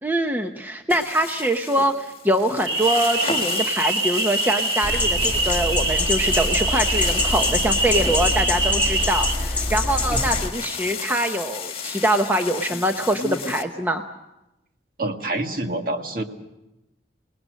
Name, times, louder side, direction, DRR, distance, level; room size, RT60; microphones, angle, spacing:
voice 1, 0.0-14.0, right 1 dB, 10° right, 5 dB, 0.8 m, -24 dB
sound 1, 0.9-13.6, left 6 dB, 30° left, 1.8 m, -33 dB
sound 2, 2.7-9.3, right 3 dB, 70° right, 2.3 m, -24 dB
sound 3, 4.8-10.5, left 2 dB, 10° left, 1.4 m, -25 dB
voice 2, 15.0-16.2, right 2 dB, 50° right, 4 dB, 1.8 m, -27 dB
27.5 x 19.5 x 6.4 m, 0.94 s
head